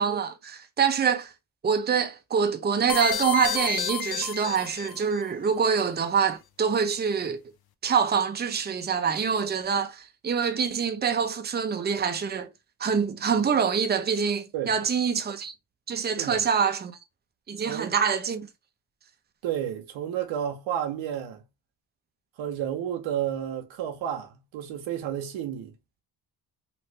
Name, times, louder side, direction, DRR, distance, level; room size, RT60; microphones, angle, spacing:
voice 1, 0.0-1.3 1.6-7.4 7.8-12.5 12.8-15.5 15.9-17.0 17.5-18.5, right 6 dB, 20° right, 0.6 m, -25 dB
sound 1, 2.9-5.2, left 9 dB, 55° left, 0.6 m, -31 dB
voice 2, 19.4-21.4 22.4-25.7, right 10 dB, 90° right, 0.9 m, -31 dB
2.9 x 2.5 x 3.2 m
cardioid pair, 70°, 45 cm